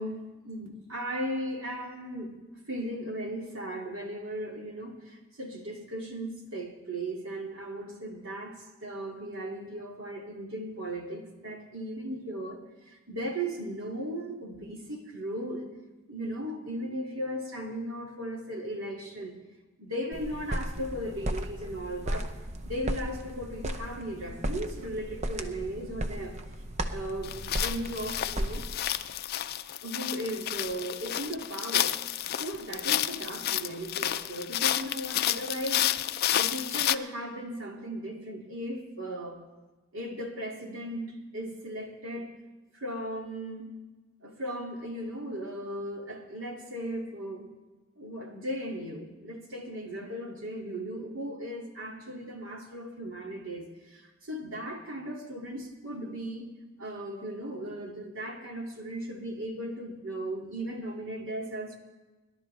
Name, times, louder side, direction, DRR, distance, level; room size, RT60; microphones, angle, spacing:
voice 1, 0.0-2.4 2.7-15.8 16.1-19.3 19.8-22.3 22.6-26.4 26.9-28.7 29.8-31.9 32.3-35.9 36.3-39.4 39.9-42.4 42.7-43.7 44.2-47.5 48.0-56.5 56.8-61.8, right 1 dB, 80° right, 0 dB, 2.4 m, -37 dB
sound 1, 20.1-28.8, right 1 dB, 35° right, 0.8 m, -35 dB
sound 2, 27.2-36.9, left 12 dB, 50° left, 0.4 m, -30 dB
26.0 x 11.5 x 3.3 m, 1.2 s
head